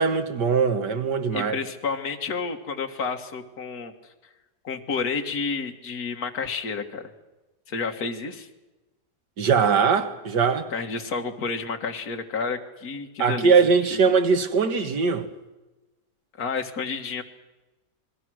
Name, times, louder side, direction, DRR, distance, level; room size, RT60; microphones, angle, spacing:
voice 1, 0.0-1.6 9.4-10.7 13.2-15.3, right 5 dB, 75° right, 2.1 m, -21 dB
voice 2, 1.3-3.9 4.6-7.1 7.7-8.5 10.7-13.5 13.9-14.0 16.4-17.2, left 5 dB, 60° left, 2.2 m, -30 dB
27.5 x 21.5 x 6.3 m
omnidirectional pair, 1.8 m